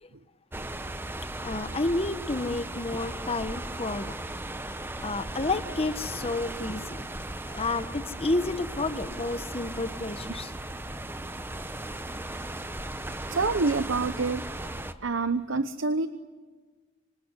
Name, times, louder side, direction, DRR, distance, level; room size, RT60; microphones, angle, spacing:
sound 1, 0.5-14.9, right 1 dB, 10° right, 1.0 m, -37 dB
voice 1, 1.4-4.1 5.0-7.1 7.5-10.5, left 2 dB, 30° left, 11 dB, 1.1 m, -30 dB
voice 2, 13.3-14.5 15.0-16.1, right 3 dB, 80° right, 12 dB, 0.9 m, -27 dB
26.0 x 25.5 x 8.2 m, 1.4 s
head